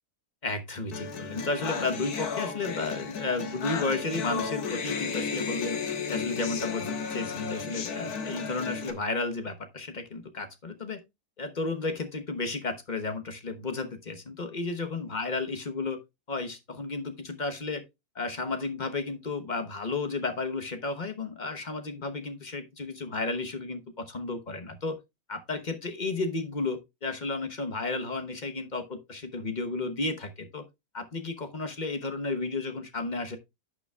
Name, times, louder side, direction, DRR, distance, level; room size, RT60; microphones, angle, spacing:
voice 1, 0.4-5.8 6.1-11.0 11.4-16.0 16.3-17.8 18.1-25.0 25.3-30.6 30.9-33.4, left 3 dB, 35° left, 0.9 m, -33 dB
sound 1, 0.9-8.9, left 5 dB, 70° left, 1.7 m, -33 dB
11.0 x 6.9 x 2.3 m
omnidirectional pair, 1.8 m